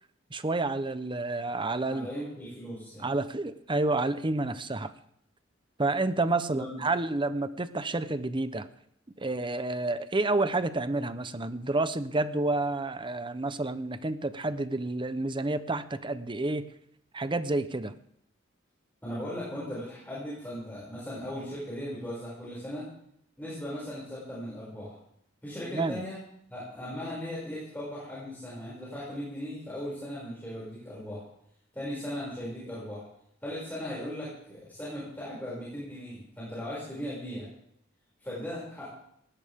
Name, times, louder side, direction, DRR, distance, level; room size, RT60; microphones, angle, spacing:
voice 1, 0.3-2.1 3.0-4.9 5.8-8.7 9.2-16.7 17.1-17.9 25.7-26.0, right 2 dB, 25° right, 12 dB, 0.8 m, -29 dB
voice 2, 1.9-3.1 6.5-6.8 19.0-22.9 23.4-25.0 25.4-26.2 26.5-31.2 31.7-33.1 33.4-37.5 38.2-38.9, equal, 10° left, -9 dB, 6.4 m, -38 dB
20.0 x 17.0 x 3.7 m, 0.71 s
head